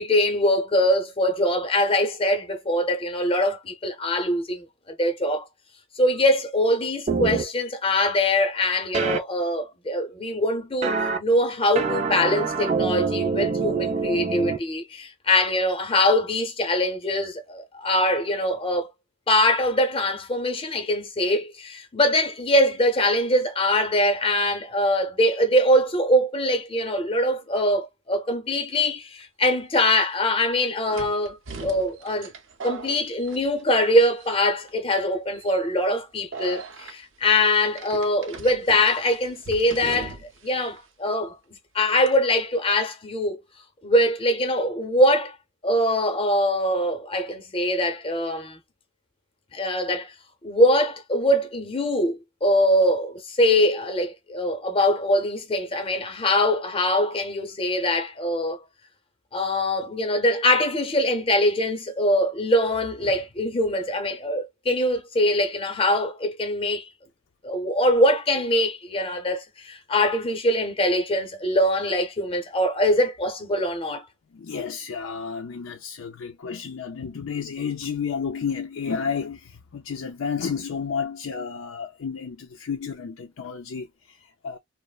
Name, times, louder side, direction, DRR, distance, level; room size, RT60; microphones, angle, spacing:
voice 1, 0.0-5.4 6.0-18.9 19.3-32.3 32.6-40.2 40.4-41.4 41.7-43.4 43.8-45.4 45.6-48.6 49.5-50.1 50.4-58.6 59.3-66.9 67.4-74.0, left 1 dB, 30° left, 0.7 m, -23 dB
sound 1, 7.1-7.4 8.9-9.2 10.8-11.2 11.7-14.6, right 5 dB, 35° right, 0.4 m, -25 dB
sound 2, 29.6-29.7 30.9-33.9 34.2-34.7 35.3-35.6 36.3-36.9 37.7-40.5 40.8-40.9 42.1-42.3, right 4 dB, 75° right, 0.6 m, -39 dB
voice 2, 74.3-84.6, left 6 dB, 90° left, 0.5 m, -31 dB
3.1 x 2.0 x 2.3 m
head